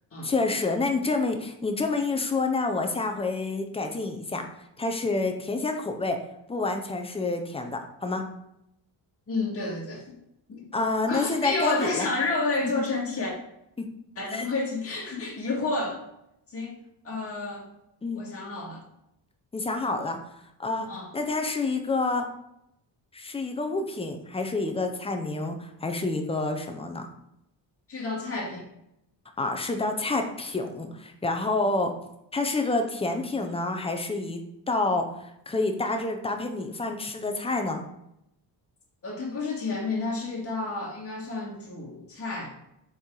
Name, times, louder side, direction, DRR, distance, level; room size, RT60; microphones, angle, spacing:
voice 1, 0.2-4.4 4.8-6.2 6.5-8.2 10.7-12.1 12.8-12.9 14.3-14.5 18.0-18.2 19.5-20.2 20.6-20.9 21.1-22.3 23.1-27.1 29.4-31.9 32.3-34.4 34.7-37.8, left 3 dB, 15° left, 4 dB, 0.5 m, -28 dB
voice 2, 9.3-10.0 10.5-10.6 11.1-13.3 14.2-16.0 16.5-16.7 17.0-17.7 18.2-18.8 20.9-21.1 27.9-28.6 39.0-42.5, left 3 dB, 30° left, -3 dB, 1.9 m, -30 dB
6.9 x 4.7 x 3.8 m, 0.80 s
cardioid pair, 180°, 46 cm